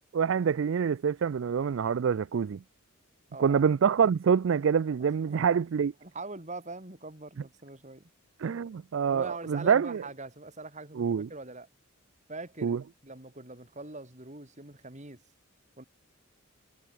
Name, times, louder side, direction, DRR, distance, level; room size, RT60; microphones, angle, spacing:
voice 1, 0.1-2.6 3.4-5.9 8.4-10.0 11.0-11.3 12.6-12.8, right 7 dB, 65° right, 0.4 m, -26 dB
voice 2, 5.0-5.4 6.0-8.1 9.1-11.7 12.3-15.2 15.8-15.9, right 3 dB, 35° right, 3.0 m, -43 dB
head